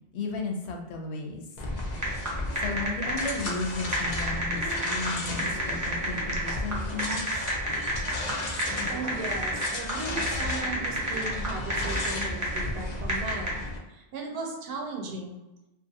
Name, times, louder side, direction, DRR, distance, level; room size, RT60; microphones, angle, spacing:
voice 1, 0.1-1.4 2.6-7.3, left 3 dB, 85° left, 2 dB, 0.8 m, -34 dB
sound 1, 1.6-13.8, left 2 dB, 55° left, 0.5 m, -34 dB
sound 2, 1.8-13.6, right 1 dB, 20° right, 0.6 m, -31 dB
voice 2, 8.9-13.6 13.9-15.4, right 3 dB, 70° right, 1 dB, 0.8 m, -36 dB
2.6 x 2.4 x 2.6 m, 1.0 s
omnidirectional pair, 1.1 m